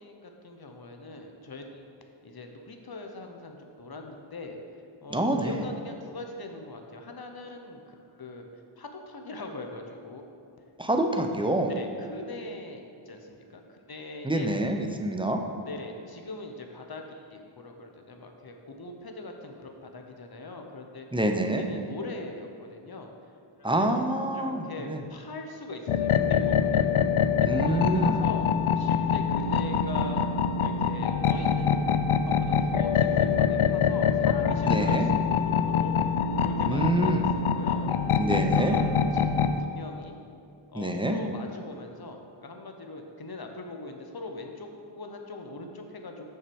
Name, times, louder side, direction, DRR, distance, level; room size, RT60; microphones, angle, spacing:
voice 1, 0.0-1.8 2.2-4.6 5.0-8.5 8.8-10.3 11.7-14.6 15.6-21.1 21.6-23.1 23.8-23.9 24.3-26.9 27.5-28.5 28.7-30.2 30.6-35.1 35.4-37.9 38.3-39.3 39.6-40.2 40.7-46.2, left 2 dB, 45° left, 4 dB, 1.0 m, -41 dB
voice 2, 5.1-5.6 10.8-11.7 14.2-15.4 21.1-21.7 23.6-25.0 27.5-28.2 34.6-35.0 36.6-37.2 38.2-38.8 40.7-41.2, right 1 dB, 10° right, 3 dB, 0.7 m, -26 dB
sound 1, 25.9-39.6, left 7 dB, 80° left, 0.6 m, -25 dB
6.6 x 5.7 x 7.0 m, 2.5 s
wide cardioid pair, 80°, 50 cm